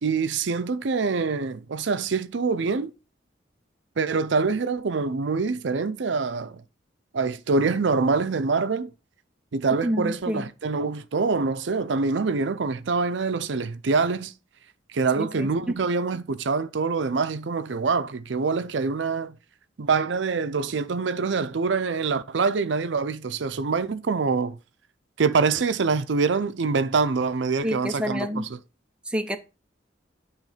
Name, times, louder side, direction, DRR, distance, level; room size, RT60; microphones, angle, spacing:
voice 1, 0.0-2.9 4.0-6.6 7.1-8.9 9.5-14.3 14.9-19.4 19.8-24.6 25.2-28.3, right 4 dB, 70° right, 0.5 m, -25 dB
voice 2, 9.8-10.5 15.2-15.8 27.6-28.5 29.1-29.4, equal, 5° right, 0.6 m, -28 dB
9.2 x 3.2 x 4.9 m
head